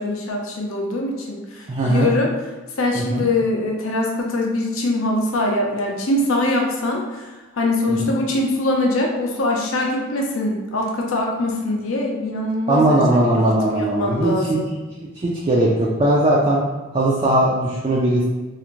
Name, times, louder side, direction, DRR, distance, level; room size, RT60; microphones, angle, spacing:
voice 1, 0.0-2.3 2.8-13.0 13.3-14.7, left 2 dB, 70° left, 0 dB, 0.5 m, -23 dB
voice 2, 1.7-2.1 2.9-3.2 7.9-8.0 12.7-14.6 15.2-16.6 16.9-18.2, right 1 dB, 25° right, -4 dB, 0.3 m, -19 dB
2.5 x 2.4 x 3.0 m, 1.2 s
head